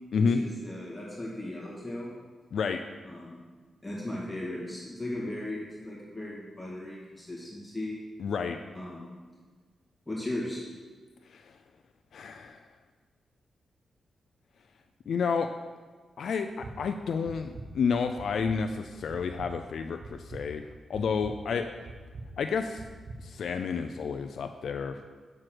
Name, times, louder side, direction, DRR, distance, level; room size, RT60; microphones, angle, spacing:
voice 1, 0.1-2.1 3.0-3.4 3.8-7.9 8.7-9.1 10.1-10.6, left 1 dB, 10° left, -6 dB, 2.1 m, -37 dB
voice 2, 8.2-8.6 11.3-11.5 12.1-12.6 15.1-15.5 16.2-21.7 22.4-22.8 23.2-25.0, left 5 dB, 75° left, 6 dB, 0.3 m, -30 dB
sound 1, 16.5-16.7 17.2-17.7 18.2-18.6 19.1-19.5 20.0-20.4 20.9-21.3 21.8-22.3 22.8-23.2, right 3 dB, 55° right, 0.8 m, -42 dB
6.3 x 4.6 x 6.0 m, 1.4 s
cardioid pair, 90°, 0 cm